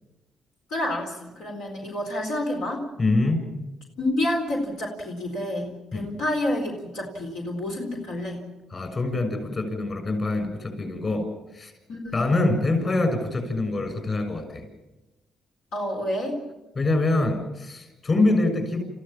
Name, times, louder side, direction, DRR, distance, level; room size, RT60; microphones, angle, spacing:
voice 1, 0.7-2.8 4.0-8.4 11.9-12.5 15.7-16.4, left 1 dB, 85° left, 0 dB, 4.2 m, -29 dB
voice 2, 3.0-3.4 5.9-6.1 8.7-11.3 11.5-11.7 12.1-14.7 16.7-18.8, left 2 dB, 40° left, 7 dB, 6.8 m, -24 dB
29.0 x 15.5 x 7.4 m, 1.0 s
cardioid pair, 90°, 0 cm